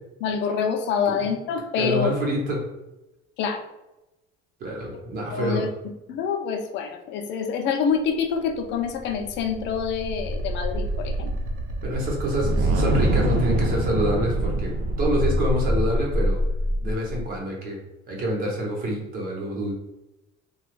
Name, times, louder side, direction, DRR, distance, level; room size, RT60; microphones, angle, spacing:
voice 1, 0.2-2.1 3.4-3.6 5.3-5.7 6.1-11.3, left 6 dB, 60° left, 4 dB, 0.5 m, -26 dB
voice 2, 1.7-2.6 4.6-5.6 11.8-16.4 16.8-17.8 18.1-19.7, equal, 45° right, -2 dB, 0.9 m, -27 dB
sound 1, 8.9-17.3, right 1 dB, 85° right, 0.6 m, -25 dB
2.9 x 2.3 x 3.3 m, 0.97 s
cardioid pair, 160°, 21 cm